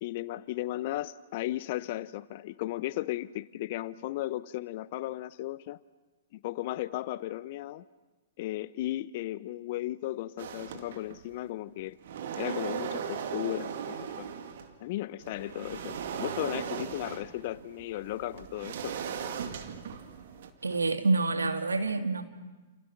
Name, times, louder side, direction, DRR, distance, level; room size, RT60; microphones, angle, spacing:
voice 1, 0.0-5.8 6.3-7.8 8.4-12.0 12.4-14.3 14.8-18.9, left 15 dB, 45° left, 18 dB, 0.8 m, -35 dB
sound 1, 10.4-11.4 11.8-14.7 15.2-20.8, right 7 dB, 55° right, 2.1 m, -38 dB
voice 2, 20.6-22.2, right 3 dB, 80° right, 7 dB, 2.0 m, -27 dB
29.5 x 28.5 x 6.0 m, 1.2 s
figure-of-eight pair, 110°, 0 cm